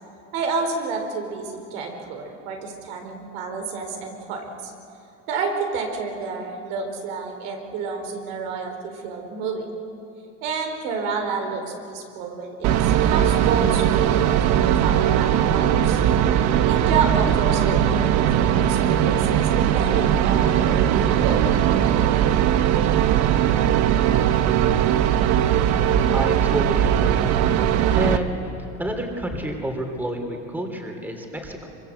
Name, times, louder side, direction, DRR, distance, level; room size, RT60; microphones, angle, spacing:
voice 1, 0.3-4.7 5.3-9.7 10.4-16.0 16.7-21.5, right 4 dB, 80° right, 3 dB, 4.2 m, -29 dB
sound 1, 12.6-28.2, right 10 dB, 60° right, 1.2 m, -19 dB
voice 2, 26.1-27.3 28.0-28.3 28.6-31.7, equal, 5° right, 3 dB, 3.1 m, -29 dB
24.5 x 24.0 x 8.1 m, 2.8 s
cardioid pair, 140°, 30 cm